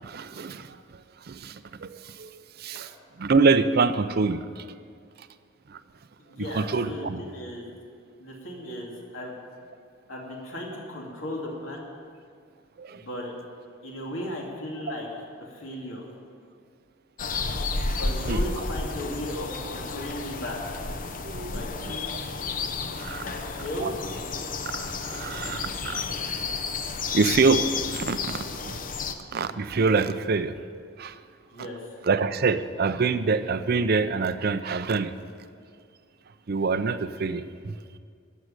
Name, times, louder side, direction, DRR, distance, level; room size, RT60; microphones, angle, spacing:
voice 1, 0.0-2.9 3.2-4.7 5.7-5.8 6.4-7.2 12.8-13.0 18.2-18.5 21.2-21.9 22.8-23.2 23.8-23.9 24.7-26.1 27.1-27.6 27.9-28.8 29.3-30.6 31.0-31.2 31.6-31.7 32.0-35.1 36.5-37.8, right 4 dB, 50° right, 12 dB, 0.5 m, -26 dB
voice 2, 6.2-7.7 8.2-9.3 10.1-11.9 12.9-13.3 13.8-15.1 15.4-16.1 17.9-20.6 21.5-22.3 23.2-23.9 31.5-31.8, left 1 dB, 75° left, -2 dB, 2.6 m, -36 dB
sound 1, 17.2-29.1, left 4 dB, 45° left, 0.7 m, -31 dB
13.0 x 6.4 x 8.9 m, 2.2 s
head